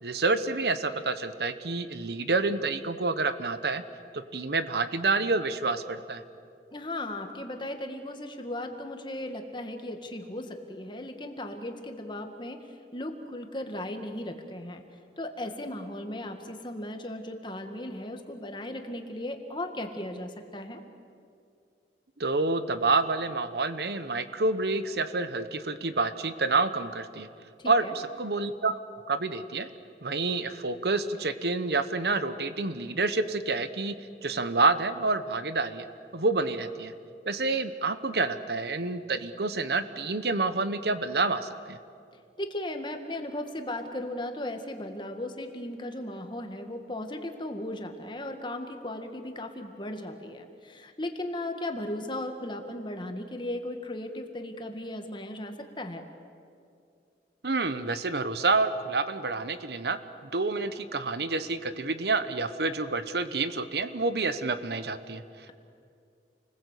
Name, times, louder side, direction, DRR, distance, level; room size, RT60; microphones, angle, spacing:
voice 1, 0.0-3.8 4.1-6.2 22.2-27.3 27.7-27.9 28.2-28.7 29.1-29.7 30.0-33.9 34.2-35.9 36.1-36.9 37.3-41.8 57.4-65.2, right 3 dB, 65° right, 11 dB, 1.1 m, -28 dB
voice 2, 6.7-12.7 12.9-14.8 15.2-20.8 27.6-28.0 42.4-56.0, left 1 dB, 25° left, 5 dB, 1.9 m, -36 dB
29.0 x 20.5 x 8.4 m, 2.4 s
head